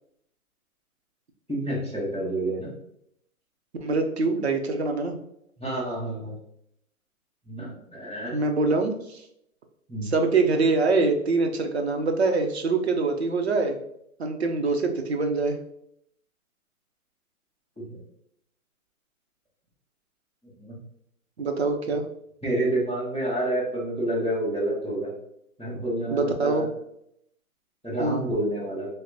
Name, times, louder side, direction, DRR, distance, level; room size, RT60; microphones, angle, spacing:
voice 1, 1.5-2.7 5.6-6.3 7.4-8.3 9.9-10.1 17.8-18.0 20.6-20.8 22.4-25.1 25.6-26.6 27.8-28.9, right 1 dB, 5° left, -19 dB, 0.6 m, -28 dB
voice 2, 3.8-5.2 8.3-9.2 10.0-13.8 14.2-15.6 21.4-22.1 26.1-26.7 28.0-28.3, right 3 dB, 50° right, 4 dB, 0.5 m, -24 dB
5.2 x 2.0 x 2.6 m, 0.74 s
hypercardioid pair, 175°, 44 cm